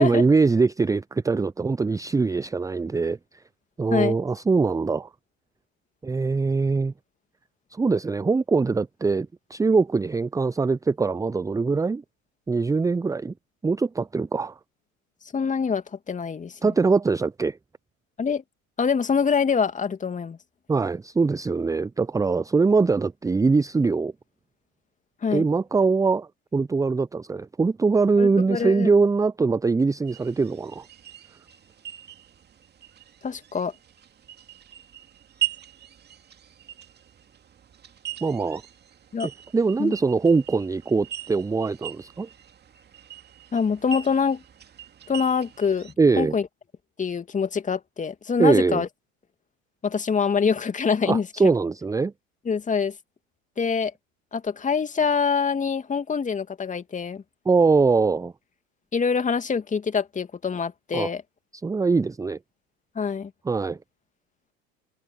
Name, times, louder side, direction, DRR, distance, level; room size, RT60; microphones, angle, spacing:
voice 1, 0.0-3.2 3.8-5.1 6.0-6.9 7.7-12.0 12.5-13.3 13.6-14.6 16.6-17.6 20.7-24.1 25.3-30.8 38.2-38.6 39.5-42.3 46.0-46.3 48.4-48.8 51.1-52.1 57.5-58.3 60.9-61.1 61.5-62.4 63.4-63.8, right 4 dB, 10° right, 0.9 m, -22 dB
voice 2, 15.3-16.7 18.2-18.4 18.8-20.4 25.2-25.4 28.2-28.9 33.2-33.7 39.1-39.3 39.8-39.9 43.5-44.4 45.1-46.5 47.0-48.9 49.8-51.5 52.5-52.9 53.6-53.9 54.3-57.2 58.9-61.2 62.9-63.3, left 6 dB, 20° left, 2.8 m, -25 dB
sound 1, 30.1-45.9, right 12 dB, 25° right, 2.6 m, -40 dB
figure-of-eight pair, 80°, 41 cm